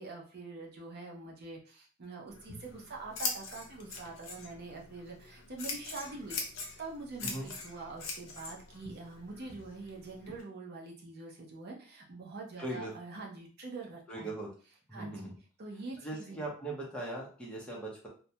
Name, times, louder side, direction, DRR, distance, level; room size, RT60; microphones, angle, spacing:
voice 1, 0.0-6.4 6.8-14.3 14.9-15.2 15.6-16.4, right 3 dB, 55° right, 0 dB, 0.5 m, -45 dB
Scissors, 2.3-10.4, left 4 dB, 85° left, 0.6 m, -42 dB
voice 2, 12.6-12.9 14.1-14.5 14.9-15.3 16.0-18.1, right 2 dB, 5° left, -4 dB, 0.6 m, -39 dB
2.2 x 2.1 x 2.8 m, 0.39 s
head